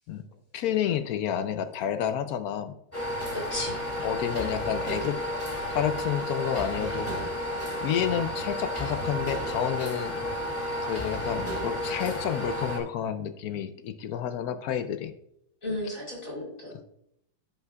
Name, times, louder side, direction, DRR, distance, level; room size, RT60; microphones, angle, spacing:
voice 1, 0.5-2.8 4.0-5.2 5.7-7.3 7.8-10.2 10.8-15.1, left 9 dB, 75° left, 10 dB, 0.8 m, -30 dB
sound 1, 2.9-12.8, left 1 dB, 5° left, 2.3 m, -32 dB
voice 2, 3.3-4.1 15.6-16.8, left 1 dB, 45° left, -3 dB, 2.6 m, -35 dB
16.0 x 5.6 x 2.3 m, 0.77 s
omnidirectional pair, 2.1 m